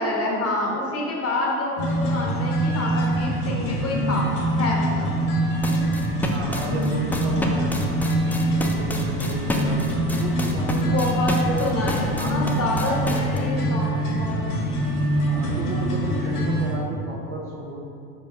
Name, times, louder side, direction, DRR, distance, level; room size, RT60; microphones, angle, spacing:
voice 1, 0.0-4.3 4.6-5.1 5.7-5.9 10.8-14.4, left 2 dB, 30° left, -2 dB, 1.5 m, -27 dB
sound 1, 1.8-16.7, right 1 dB, 50° left, 1.4 m, -24 dB
sound 2, 5.6-13.4, left 2 dB, 5° left, 0.3 m, -30 dB
voice 2, 6.3-11.0 11.4-12.6 15.2-17.8, right 2 dB, 30° right, -3 dB, 1.3 m, -33 dB
5.3 x 4.5 x 5.2 m, 2.6 s
figure-of-eight pair, 75°, 44 cm